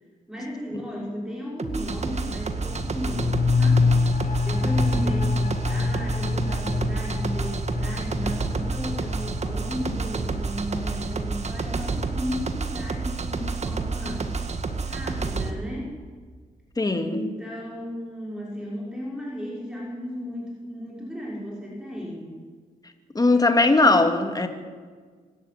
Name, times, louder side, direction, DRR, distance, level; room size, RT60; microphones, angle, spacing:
voice 1, 0.3-4.0 4.4-14.3 14.8-15.9 17.0-22.4, equal, 5° right, -4 dB, 6.1 m, -34 dB
sound 1, 1.6-15.5, right 4 dB, 45° right, 2.0 m, -30 dB
sound 2, 2.5-11.9 12.2-12.3, left 3 dB, 60° left, 3.1 m, -26 dB
voice 2, 16.8-17.2 23.1-24.5, left 2 dB, 25° left, 6 dB, 2.4 m, -19 dB
24.5 x 12.5 x 9.6 m, 1.5 s
cardioid pair, 95°, 16 cm